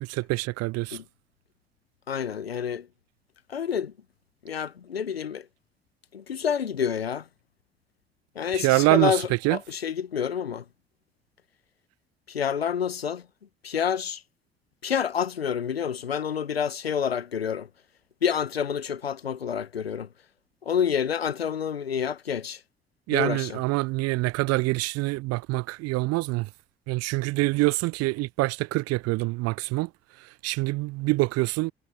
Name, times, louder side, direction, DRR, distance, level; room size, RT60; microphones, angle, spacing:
voice 1, 0.0-1.0 8.5-9.6 23.1-26.5 26.9-29.9 30.4-31.7, right 22 dB, 55° right, 0.8 m, -25 dB
voice 2, 2.1-2.9 3.5-3.9 4.4-5.4 6.1-7.2 8.4-10.6 12.3-13.2 13.6-14.2 14.8-17.7 18.2-20.1 20.7-22.6 23.1-23.6, left 7 dB, 85° left, 0.8 m, -28 dB
figure-of-eight pair, 45°, 30 cm